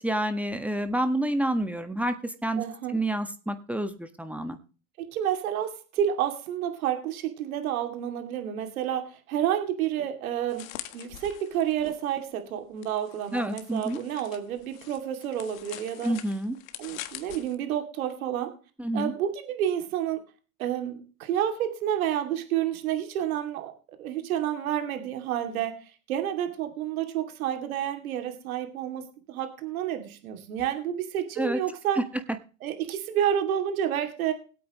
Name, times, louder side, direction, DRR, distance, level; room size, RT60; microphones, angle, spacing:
voice 1, 0.0-2.6 2.9-4.6 13.3-14.0 16.0-16.5 18.8-19.1 31.4-31.6 32.0-32.1, right 1 dB, 5° right, 8 dB, 1.4 m, -28 dB
voice 2, 2.6-3.0 5.0-10.7 10.9-16.1 16.8-18.5 18.9-20.2 20.6-23.7 24.0-32.0 32.6-34.3, right 10 dB, 80° right, 6 dB, 2.7 m, -30 dB
sound 1, 10.5-12.1 12.8-17.5, left 14 dB, 70° left, 1.5 m, -44 dB
21.0 x 8.6 x 3.0 m, 0.36 s
supercardioid pair, 115°, 41 cm